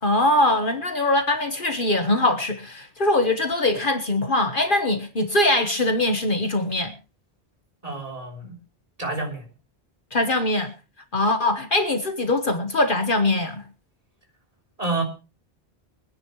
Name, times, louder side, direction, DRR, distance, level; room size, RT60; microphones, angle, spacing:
voice 1, 0.0-6.9 10.1-10.7 11.1-13.6, left 2 dB, 55° left, 1.4 m, -22 dB
voice 2, 7.8-8.6 9.0-9.5 14.8-15.0, right 2 dB, 35° right, 3.7 m, -28 dB
24.0 x 10.5 x 3.1 m
omnidirectional pair, 1.1 m